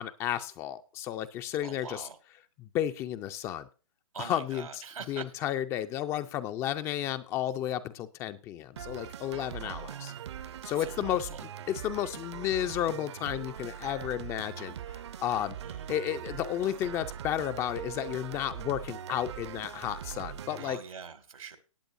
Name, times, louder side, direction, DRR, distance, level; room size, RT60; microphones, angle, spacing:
voice 1, 0.0-2.1 2.6-3.7 4.2-4.7 5.1-10.1 10.6-11.3 11.7-15.6 15.9-20.8, left 11 dB, 15° left, 11 dB, 0.4 m, -32 dB
voice 2, 1.6-2.2 4.1-5.3 9.5-10.2 10.6-11.4 15.6-16.0 20.6-21.6, right 6 dB, 85° right, 10 dB, 2.1 m, -44 dB
sound 1, 8.8-20.8, right 9 dB, 55° right, 0.7 m, -41 dB
18.5 x 8.4 x 2.6 m, 0.35 s
hypercardioid pair, 140°, 17 cm